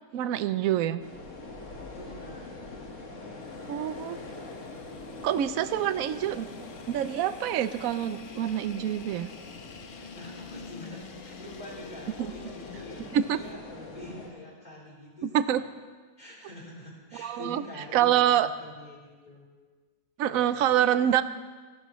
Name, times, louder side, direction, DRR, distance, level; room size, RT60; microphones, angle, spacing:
voice 1, 0.1-1.0 3.7-4.2 5.2-6.5 6.9-9.3 12.2-12.3 13.1-13.4 15.2-15.6 17.2-17.6 17.9-18.5 20.2-21.2, right 11 dB, 65° right, 12 dB, 0.9 m, -26 dB
sound 1, 1.0-14.3, left 2 dB, 45° left, 1.8 m, -44 dB
voice 2, 1.9-2.5 9.9-15.7 16.2-19.5 20.3-21.0, left 1 dB, 25° left, -5 dB, 4.2 m, -45 dB
sound 2, 3.4-13.5, left 6 dB, 65° left, 0.5 m, -49 dB
28.0 x 11.5 x 3.1 m, 1.5 s
omnidirectional pair, 1.9 m